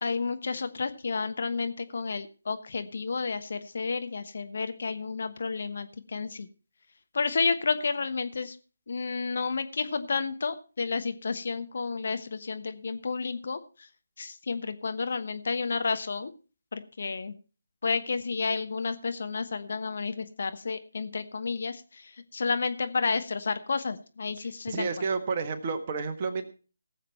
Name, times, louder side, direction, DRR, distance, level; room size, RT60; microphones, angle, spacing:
voice 1, 0.0-6.5 7.1-8.6 8.9-13.6 14.2-16.3 16.7-17.3 17.8-24.9, left 4 dB, 55° left, 9 dB, 1.1 m, -31 dB
voice 2, 24.7-26.4, right 4 dB, 35° right, 6 dB, 1.4 m, -30 dB
18.0 x 7.4 x 4.5 m, 0.36 s
figure-of-eight pair, 150°, 0 cm